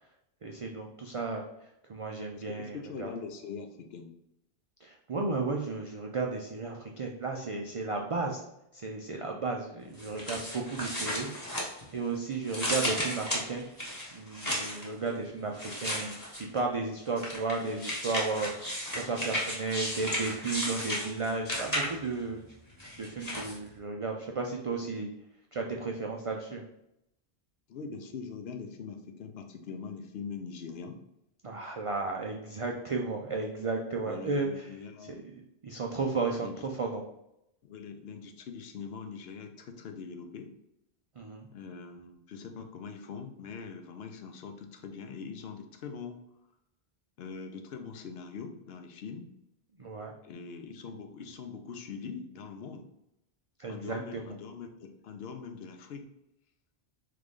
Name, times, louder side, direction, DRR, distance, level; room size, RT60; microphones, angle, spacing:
voice 1, 0.4-3.1 4.8-8.4 8.7-13.6 14.1-22.4 23.0-25.1 25.5-26.6 31.4-34.7 35.0-35.2 35.6-37.0 41.2-41.5 49.8-50.1 53.6-54.2, right 3 dB, 65° right, 1 dB, 0.3 m, -34 dB
voice 2, 2.3-4.1 27.7-31.0 34.0-35.2 36.4-36.5 37.6-40.5 41.5-46.2 47.2-49.3 50.2-52.9 53.7-56.1, left 5 dB, 70° left, 6 dB, 0.8 m, -42 dB
sound 1, 10.0-12.1 12.5-14.8 15.6-16.6 17.2-22.2 22.8-23.6, equal, 20° left, 1.0 m, -34 dB
3.8 x 3.2 x 3.5 m, 0.83 s
omnidirectional pair, 1.1 m